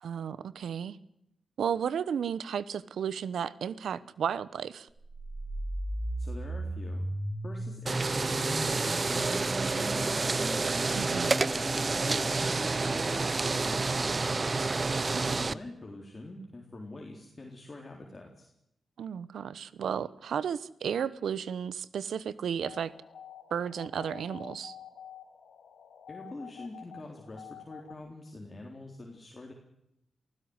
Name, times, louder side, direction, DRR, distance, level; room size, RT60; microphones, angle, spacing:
voice 1, 0.0-1.0 1.6-4.9 10.9-11.3 15.1-15.3 19.0-22.9 23.5-24.8, right 8 dB, 90° right, 18 dB, 1.0 m, -33 dB
sound 1, 5.0-14.9, right 1 dB, 20° right, 3.6 m, -38 dB
voice 2, 6.2-7.1 7.4-10.5 11.0-14.4 15.2-18.5 26.1-29.5, left 2 dB, 30° left, 0 dB, 3.9 m, -45 dB
sound 2, 7.9-15.5, right 3 dB, 35° right, 0.7 m, -29 dB
sound 3, 22.6-27.9, left 8 dB, 85° left, 2.8 m, -49 dB
24.0 x 15.5 x 8.1 m, 0.81 s
cardioid pair, 85°, 0 cm